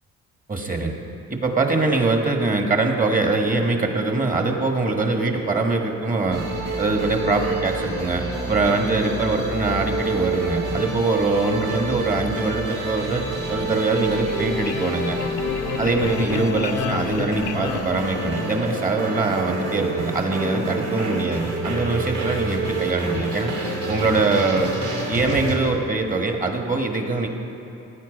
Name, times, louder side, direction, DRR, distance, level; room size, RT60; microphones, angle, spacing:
voice 1, 0.5-0.9 1.3-6.5 6.8-15.2 15.8-23.5 23.9-24.7 25.1-27.3, right 3 dB, 25° right, 3 dB, 1.6 m, -23 dB
sound 1, 6.3-25.6, right 2 dB, 90° right, 2.7 m, -28 dB
sound 2, 14.1-18.8, left 12 dB, 80° left, 0.5 m, -32 dB
15.0 x 9.4 x 5.2 m, 2.8 s
cardioid pair, 90°, 30 cm